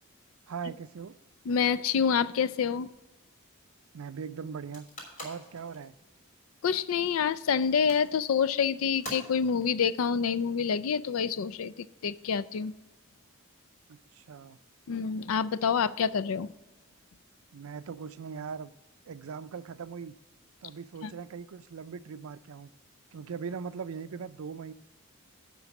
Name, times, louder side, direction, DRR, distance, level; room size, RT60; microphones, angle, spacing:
voice 1, 0.5-1.2 3.9-4.9 5.2-5.9 13.9-14.6 17.5-18.7 19.0-20.1 20.6-22.7 23.1-24.7, right 6 dB, 85° right, 14 dB, 0.4 m, -40 dB
voice 2, 1.5-2.9 6.6-12.7 14.9-16.5 21.0-21.1, left 6 dB, 80° left, 17 dB, 0.4 m, -27 dB
sound 1, 4.7-10.9, equal, 35° left, 3.3 m, -47 dB
11.0 x 3.9 x 7.1 m, 1.1 s
head